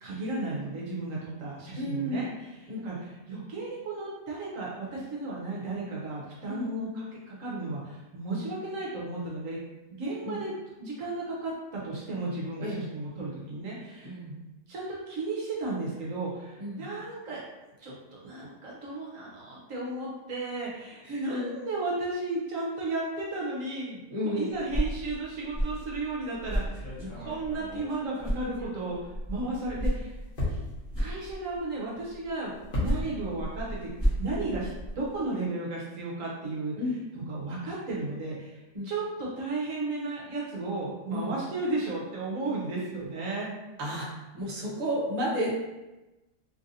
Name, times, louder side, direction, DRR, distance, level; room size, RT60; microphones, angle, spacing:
voice 1, 0.0-9.6 9.9-10.5 10.8-14.2 14.7-17.4 17.8-26.9 27.2-30.2 31.0-33.9 34.2-34.7 35.0-36.8 37.1-43.5, right 2 dB, 65° right, -4 dB, 1.0 m, -34 dB
voice 2, 1.7-2.3 2.7-2.9 6.5-6.9 10.2-10.4 12.6-12.9 14.0-14.4 16.6-16.9 21.0-21.6 24.1-24.5 27.0-27.2 36.8-37.0 38.7-38.9 41.1-41.3 43.8-44.1 44.3-45.5, equal, 45° right, -5 dB, 0.5 m, -32 dB
sound 1, 24.5-27.9 28.2-31.7 32.6-35.2, equal, 15° left, 0.6 m, -33 dB
sound 2, 26.4-29.1 29.4-33.5 33.8-35.1, left 1 dB, 40° left, 1.0 m, -38 dB
3.2 x 2.5 x 2.6 m, 1.0 s
omnidirectional pair, 1.7 m